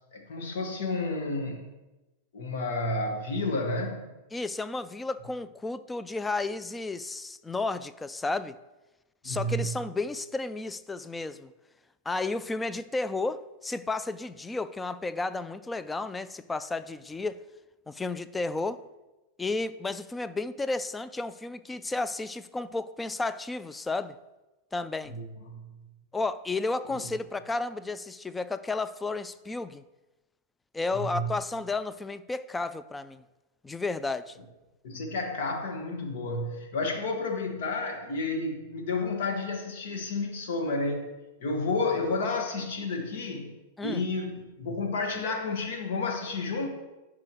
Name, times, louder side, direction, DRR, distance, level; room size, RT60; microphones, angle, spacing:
voice 1, 0.1-1.7 2.3-4.1 9.2-9.7 25.1-25.8 30.9-31.3 34.8-41.1 41.4-43.5 43.8-46.7, left 3 dB, 70° left, 1.6 m, -31 dB
voice 2, 4.3-8.6 9.2-11.5 12.1-17.4 17.9-18.8 19.4-24.2 24.7-25.1 26.1-29.8 30.7-33.2 33.6-34.4 43.8-44.0, left 3 dB, 10° left, 0.3 m, -32 dB
11.5 x 4.9 x 3.1 m
hypercardioid pair, 120°, 0 cm